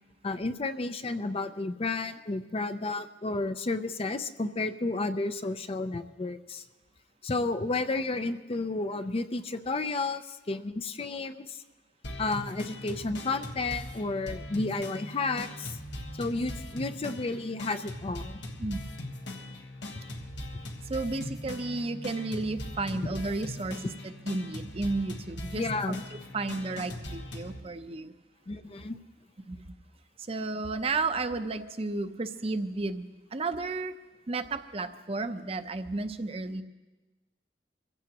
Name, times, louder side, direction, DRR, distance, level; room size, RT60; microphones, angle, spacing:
voice 1, 0.2-6.6 7.2-11.6 12.2-15.8 16.2-18.4 25.6-26.0 28.5-29.0, left 3 dB, 35° left, 10 dB, 0.5 m, -32 dB
sound 1, 12.0-27.6, left 1 dB, 85° left, 1.4 m, -40 dB
voice 2, 20.8-26.0 26.3-28.1 29.5-29.6 30.3-34.0 34.3-36.6, right 3 dB, 35° right, 9 dB, 0.6 m, -33 dB
24.5 x 15.5 x 2.9 m, 1.2 s
head